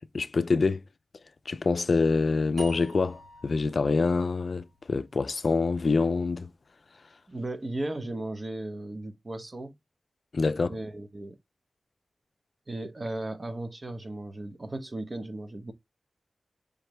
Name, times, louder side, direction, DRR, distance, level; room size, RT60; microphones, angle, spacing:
voice 1, 0.1-0.8 1.5-6.5 10.3-10.7, left 4 dB, 60° left, 0.4 m, -26 dB
sound 1, 2.6-5.8, equal, 70° right, 2.3 m, -48 dB
voice 2, 7.3-9.7 10.7-11.4 12.7-15.7, right 2 dB, 40° right, 0.9 m, -36 dB
5.1 x 3.2 x 3.0 m
wide cardioid pair, 75°, 0 cm